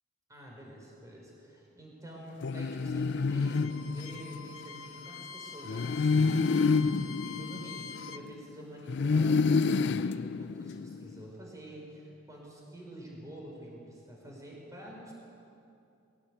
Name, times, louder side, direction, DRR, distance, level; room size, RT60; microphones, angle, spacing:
voice 1, 0.3-6.7 7.2-15.1, right 1 dB, 15° right, -2 dB, 5.2 m, -48 dB
sound 1, 2.4-4.5 5.7-8.4 8.9-11.1, left 4 dB, 55° left, 0.4 m, -28 dB
Bowed string instrument, 3.3-8.3, left 6 dB, 75° left, 0.9 m, -45 dB
22.0 x 18.0 x 8.3 m, 2.6 s
head